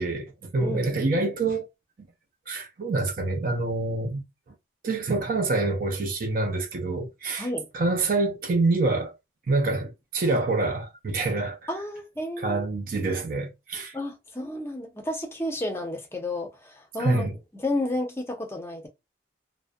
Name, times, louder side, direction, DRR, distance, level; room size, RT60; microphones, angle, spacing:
voice 1, 0.0-1.7 2.5-4.2 4.8-7.5 7.7-9.1 9.5-11.6 12.4-14.0 17.0-17.3, right 3 dB, 50° right, 0.4 m, -26 dB
voice 2, 0.6-1.0 7.4-7.7 11.7-12.6 13.9-17.3 17.5-18.9, left 1 dB, 15° left, 0.5 m, -31 dB
2.4 x 2.1 x 2.5 m
head